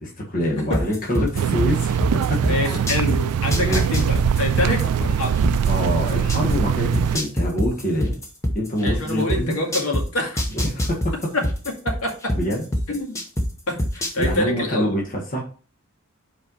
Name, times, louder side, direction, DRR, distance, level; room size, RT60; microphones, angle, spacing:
voice 1, 0.0-2.4 3.6-3.9 4.6-4.7 5.7-8.2 8.5-9.6 10.5-11.0 12.3-12.6 14.2-15.4, equal, 40° left, -1 dB, 1.5 m, -25 dB
sound 1, 0.7-3.2 3.5-6.6 6.9-10.0 10.4-13.5 13.8-14.3, equal, 15° left, 0.9 m, -23 dB
sound 2, 1.4-7.2, right 8 dB, 85° right, 0.3 m, -22 dB
voice 2, 2.4-5.4 8.8-10.4 11.3-11.4 12.0-12.3 12.9-13.2 13.7-14.9, left 1 dB, 75° left, 0 dB, 2.1 m, -26 dB
5.3 x 4.5 x 5.4 m, 0.39 s
head